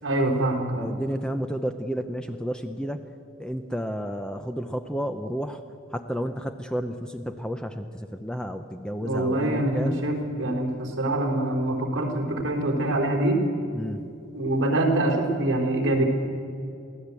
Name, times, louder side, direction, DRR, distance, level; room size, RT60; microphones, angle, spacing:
voice 1, 0.0-0.9 9.0-13.4 14.3-16.0, right 1 dB, 55° right, 1 dB, 3.7 m, -25 dB
voice 2, 0.8-3.0 3.4-5.6 5.9-10.0 13.7-14.0, equal, 5° left, 7 dB, 0.6 m, -31 dB
23.5 x 16.0 x 8.3 m, 2.7 s
head